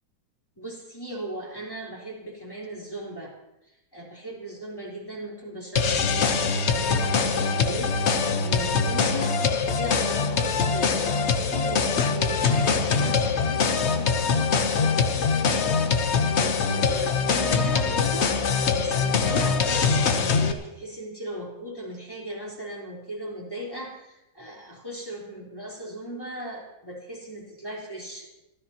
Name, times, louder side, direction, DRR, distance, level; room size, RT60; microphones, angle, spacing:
voice 1, 0.6-3.3 3.9-9.4 9.7-28.3, equal, 10° left, -5 dB, 3.8 m, -37 dB
sound 1, 5.8-20.5, left 5 dB, 50° left, 0.8 m, -23 dB
26.5 x 14.0 x 2.9 m, 0.93 s
omnidirectional pair, 2.3 m